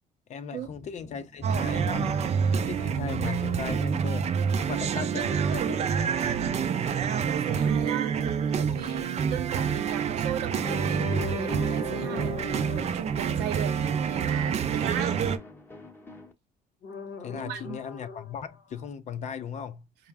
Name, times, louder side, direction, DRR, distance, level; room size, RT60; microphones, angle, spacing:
voice 1, 0.3-2.2 2.5-4.4 4.7-6.2 17.2-19.9, left 7 dB, 45° left, 0.5 m, -37 dB
sound 1, 0.6-16.3, left 1 dB, 10° left, 0.7 m, -48 dB
sound 2, 1.4-15.4, right 7 dB, 40° right, 0.4 m, -27 dB
voice 2, 4.9-5.3 7.1-8.1 8.5-12.4 12.7-13.8 14.0-15.3 17.3-17.8, right 9 dB, 85° right, 0.7 m, -37 dB
sound 3, 7.6-7.7 8.7-8.9 10.5-13.0 16.8-18.9, left 4 dB, 70° left, 0.8 m, -37 dB
4.5 x 2.1 x 3.4 m
cardioid pair, 110°, 17 cm